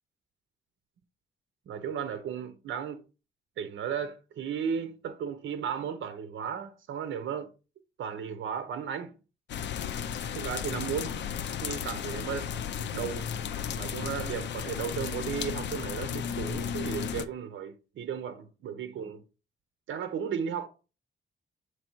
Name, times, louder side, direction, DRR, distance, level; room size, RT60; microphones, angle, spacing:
voice 1, 1.7-3.0 3.6-7.5 8.0-9.1 10.3-11.1 11.6-12.5 12.9-13.3 13.7-19.2 19.9-20.7, right 7 dB, 80° right, 0.8 m, -35 dB
sound 1, 9.5-17.3, left 8 dB, 65° left, 0.5 m, -34 dB
6.8 x 3.2 x 4.5 m
wide cardioid pair, 175°, 20 cm